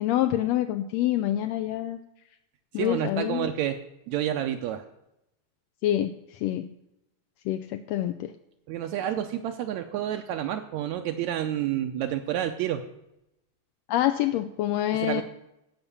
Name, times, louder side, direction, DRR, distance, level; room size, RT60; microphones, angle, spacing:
voice 1, 0.0-2.0 2.7-3.5 5.8-6.6 7.5-8.3 13.9-15.2, left 13 dB, 80° left, 8 dB, 1.6 m, -26 dB
voice 2, 2.8-3.8 4.1-4.8 8.7-12.8 14.9-15.2, right 11 dB, 80° right, 5 dB, 1.9 m, -29 dB
16.0 x 5.8 x 6.9 m, 0.86 s
omnidirectional pair, 3.5 m